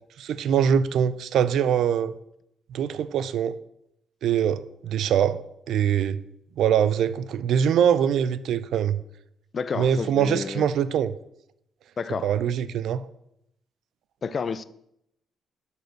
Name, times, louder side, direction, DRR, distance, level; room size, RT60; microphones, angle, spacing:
voice 1, 0.2-2.1 2.7-3.6 4.2-5.4 5.7-6.2 6.6-9.0 9.8-11.1 12.2-13.0, right 8 dB, 75° right, 0.4 m, -23 dB
voice 2, 9.5-10.7 12.0-12.3 14.2-14.6, left 5 dB, 45° left, 0.4 m, -30 dB
5.9 x 5.5 x 6.4 m
cardioid pair, 90°, 0 cm